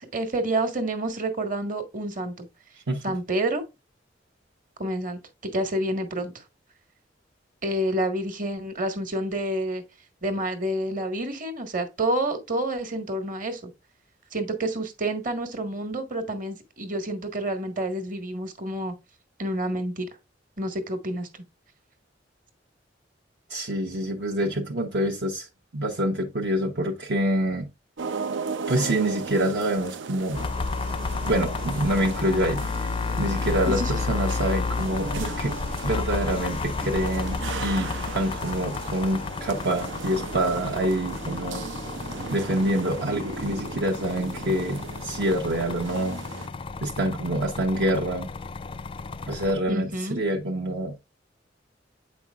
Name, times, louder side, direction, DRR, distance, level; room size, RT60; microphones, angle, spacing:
voice 1, 0.0-2.5 3.0-3.6 4.8-5.2 5.5-6.3 7.6-9.8 10.2-13.7 14.3-18.9 19.4-20.1 20.6-21.3 33.7-33.9 49.7-50.2, right 1 dB, 45° right, 1.5 m, -28 dB
voice 2, 23.5-25.5 25.7-27.7 28.7-30.5 31.2-32.9 33.2-35.5 35.8-41.6 42.3-46.2 46.8-48.3 49.3-50.9, right 1 dB, 65° right, 1.0 m, -26 dB
sound 1, 28.0-46.5, right 4 dB, 85° right, 0.6 m, -37 dB
sound 2, 30.3-49.5, left 4 dB, 30° left, 0.4 m, -32 dB
8.3 x 5.4 x 2.4 m
head